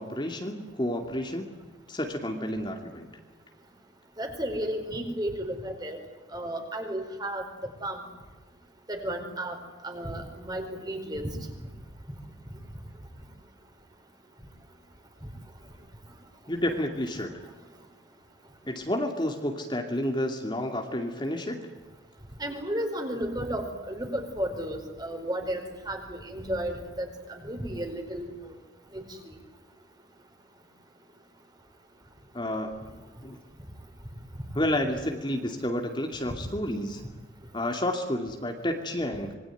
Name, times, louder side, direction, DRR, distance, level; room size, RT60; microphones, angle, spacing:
voice 1, 0.0-1.5 1.9-3.1 16.5-17.5 18.7-21.6 32.3-32.7 33.2-33.4 34.5-37.0 37.5-39.3, left 1 dB, 25° left, 3 dB, 2.5 m, -30 dB
voice 2, 4.2-6.0 6.3-8.0 8.9-9.6 9.8-11.2 22.4-28.3 28.9-29.3, right 1 dB, 20° right, 5 dB, 4.6 m, -33 dB
26.5 x 22.5 x 9.4 m, 1.3 s
head